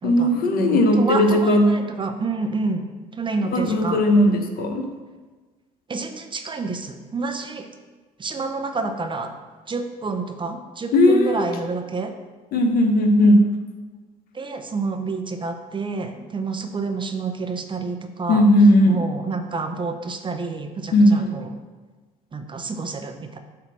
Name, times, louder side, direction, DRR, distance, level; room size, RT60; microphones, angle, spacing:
voice 1, 0.0-1.8 3.5-4.9 10.9-11.4 12.5-13.5 18.3-19.0 20.9-21.3, left 1 dB, 60° left, 5 dB, 1.0 m, -17 dB
voice 2, 0.6-4.0 5.9-7.7 8.2-9.3 9.7-12.1 14.3-18.5 18.9-21.5 22.3-23.4, right 4 dB, 30° right, 6 dB, 0.8 m, -29 dB
7.9 x 2.9 x 6.1 m, 1.3 s
hypercardioid pair, 65°, 18 cm